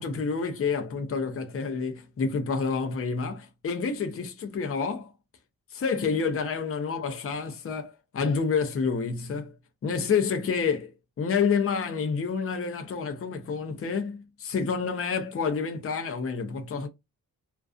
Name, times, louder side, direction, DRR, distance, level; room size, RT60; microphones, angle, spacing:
voice 1, 0.0-5.1 5.7-9.5 9.8-10.9 11.2-16.9, left 5 dB, 40° left, 0.6 m, -28 dB
2.4 x 2.3 x 2.3 m
cardioid pair, 80°, 35 cm